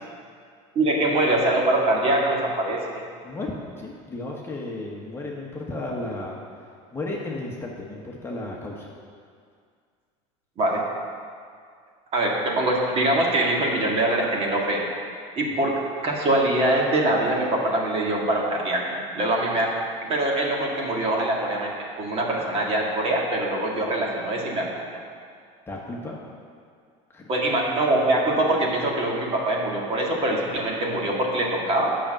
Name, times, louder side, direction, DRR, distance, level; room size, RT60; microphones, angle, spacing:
voice 1, 0.8-3.0 10.6-10.8 12.1-14.8 15.4-15.7 16.0-19.7 20.1-21.7 22.0-24.9 27.3-32.0, right 1 dB, 35° right, -2 dB, 1.9 m, -23 dB
voice 2, 3.2-6.4 6.9-8.9 25.7-26.2 27.1-27.3, left 2 dB, 15° left, -3 dB, 1.2 m, -33 dB
8.6 x 6.0 x 7.6 m, 2.1 s
cardioid pair, 135°, 17 cm